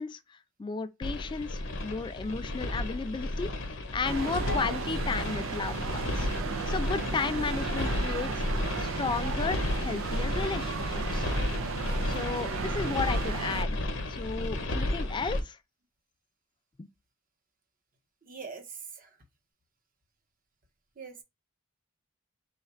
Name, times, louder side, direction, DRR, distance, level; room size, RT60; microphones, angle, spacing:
voice 1, 0.0-6.3 6.7-8.4 8.8-11.3 12.1-13.8 14.1-15.6 16.8-16.9, left 4 dB, 25° left, 0.3 m, -34 dB
sound 1, 1.0-15.4, left 1 dB, 60° left, 0.9 m, -33 dB
sound 2, 4.0-13.6, right 5 dB, 75° right, 0.5 m, -35 dB
sound 3, 4.5-7.3, left 4 dB, 90° left, 0.6 m, -45 dB
voice 2, 18.2-19.2 21.0-21.2, right 5 dB, 40° right, 0.8 m, -43 dB
4.1 x 2.4 x 4.3 m
head